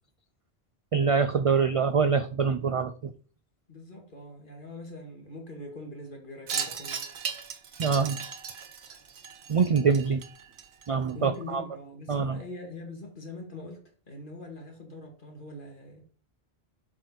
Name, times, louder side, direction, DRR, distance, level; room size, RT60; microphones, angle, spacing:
voice 1, 0.9-3.1 7.8-8.2 9.5-10.2 10.9-11.6 12.1-12.4, right 5 dB, 55° right, 0.3 m, -24 dB
voice 2, 3.7-7.1 11.1-16.0, left 2 dB, 55° left, 2.2 m, -43 dB
Wind chime, 6.5-11.1, right 7 dB, 90° right, 1.1 m, -37 dB
7.5 x 4.7 x 4.9 m
omnidirectional pair, 1.1 m